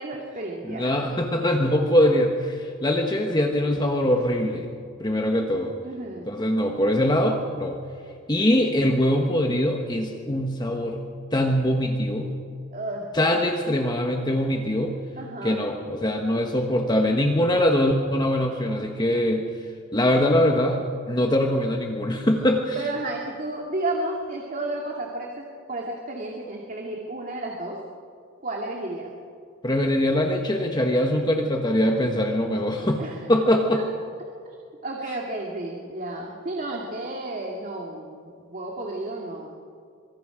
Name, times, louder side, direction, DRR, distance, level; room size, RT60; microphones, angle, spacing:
voice 1, 0.0-0.9 5.8-6.3 12.7-13.1 15.2-15.6 22.8-27.8 28.4-29.1 33.0-33.2 33.7-33.8 34.8-39.5, right 2 dB, 40° right, -1 dB, 2.4 m, -32 dB
voice 2, 0.6-4.7 5.0-5.7 6.3-7.8 8.3-11.0 11.3-12.3 13.1-14.9 15.4-19.5 19.9-22.8 29.6-33.0 33.3-33.8, left 1 dB, 20° left, 2 dB, 1.4 m, -22 dB
26.0 x 24.0 x 5.1 m, 2.3 s
head